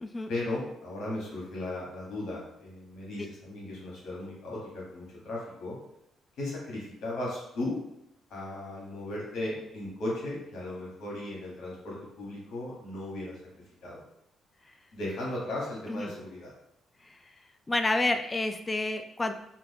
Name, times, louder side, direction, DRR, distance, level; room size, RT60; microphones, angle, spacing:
voice 1, 0.3-5.8 6.4-7.8 8.3-14.0 14.9-16.5, left 1 dB, 75° left, -4 dB, 1.2 m, -36 dB
voice 2, 17.7-19.3, left 2 dB, 25° left, 7 dB, 0.3 m, -29 dB
2.5 x 2.4 x 3.4 m, 0.79 s
cardioid pair, 90°, 0 cm